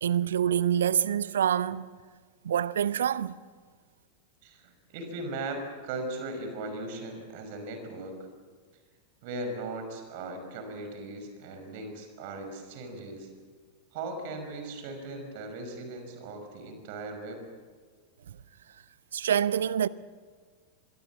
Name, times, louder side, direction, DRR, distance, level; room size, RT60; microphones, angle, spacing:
voice 1, 0.0-1.9 2.4-3.3 19.1-19.9, right 9 dB, 65° right, 0.6 m, -26 dB
voice 2, 4.4-8.2 9.2-13.3 13.9-17.4, right 2 dB, 50° right, 5.6 m, -38 dB
24.5 x 23.5 x 7.3 m
figure-of-eight pair, 90°, 0 cm